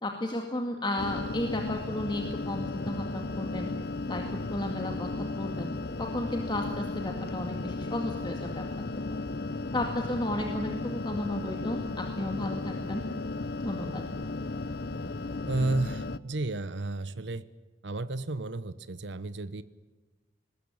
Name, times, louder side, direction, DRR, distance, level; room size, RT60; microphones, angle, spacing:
voice 1, 0.0-3.7 4.1-4.2 4.5-5.7 6.0-8.6 9.0-9.2 9.7-13.0 13.6-14.0, left 1 dB, 25° left, 2 dB, 2.1 m, -33 dB
sound 1, 1.0-16.2, left 3 dB, 60° left, 0.8 m, -35 dB
voice 2, 15.5-17.4 17.8-19.6, right 2 dB, 75° right, 14 dB, 1.0 m, -32 dB
20.5 x 19.5 x 8.8 m, 1.3 s
head